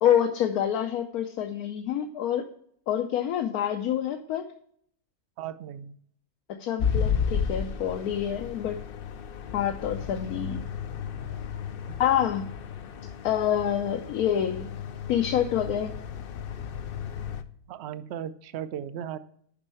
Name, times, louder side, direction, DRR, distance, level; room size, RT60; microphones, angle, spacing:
voice 1, 0.0-2.4 2.9-4.5 6.5-8.8 9.5-10.6 12.0-12.5 13.2-14.7 15.1-16.0, left 10 dB, 85° left, 5 dB, 1.2 m, -27 dB
voice 2, 5.4-6.0 11.9-12.0 17.7-19.2, right 9 dB, 60° right, 13 dB, 0.7 m, -36 dB
sound 1, 6.8-17.4, left 7 dB, 65° left, 0.5 m, -33 dB
7.2 x 5.4 x 5.5 m, 0.63 s
omnidirectional pair, 1.5 m